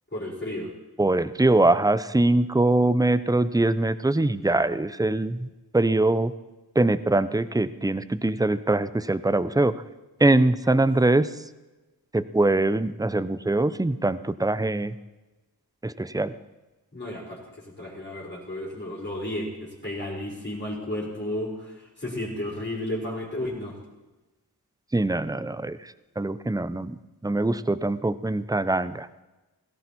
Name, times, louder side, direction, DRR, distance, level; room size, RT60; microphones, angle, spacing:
voice 1, 0.1-0.7 10.7-10.9 16.9-23.8, left 1 dB, 25° left, -4 dB, 4.9 m, -33 dB
voice 2, 1.0-5.5 5.7-6.3 6.8-9.7 10.2-11.3 12.1-14.9 15.8-16.3 24.9-27.0 27.2-29.1, right 2 dB, 10° right, 15 dB, 0.6 m, -23 dB
18.0 x 16.0 x 4.2 m, 1.1 s
wide cardioid pair, 65°, 40 cm